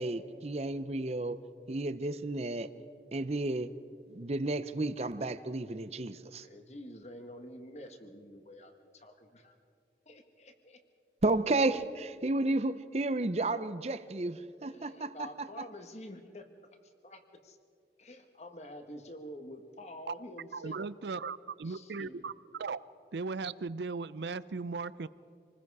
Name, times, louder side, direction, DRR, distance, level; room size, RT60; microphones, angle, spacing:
voice 1, 0.0-1.4 1.7-2.7 3.1-3.7 4.1-6.5 11.2-15.5, right 2 dB, 35° right, 13 dB, 0.7 m, -32 dB
voice 2, 6.4-9.5 10.0-10.8 14.6-16.5 17.0-17.6 18.0-20.9 21.6-22.3, left 1 dB, 40° left, 6 dB, 1.5 m, -48 dB
voice 3, 20.5-22.3 22.6-22.8 23.1-25.1, right 4 dB, 80° right, 18 dB, 0.5 m, -37 dB
27.0 x 20.0 x 4.8 m, 2.4 s
head